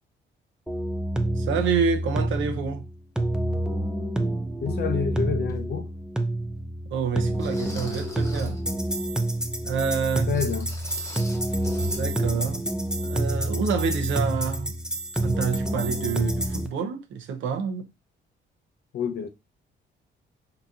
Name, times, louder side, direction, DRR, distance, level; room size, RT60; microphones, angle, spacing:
sound 1, 0.7-16.7, right 1 dB, 5° right, 0.4 m, -28 dB
voice 1, 1.4-2.9 6.9-8.6 9.6-10.4 11.8-12.6 13.0-14.8 15.2-17.9, right 6 dB, 75° right, 0.6 m, -28 dB
voice 2, 4.6-5.9 10.3-10.7 18.9-19.3, left 7 dB, 55° left, 0.6 m, -28 dB
sound 2, 5.5-5.6 6.3-6.4 7.4-8.7 10.3-12.1 12.3-12.5 12.9-13.0, left 1 dB, 15° left, 0.8 m, -43 dB
3.9 x 2.7 x 2.4 m
cardioid pair, 90°, 20 cm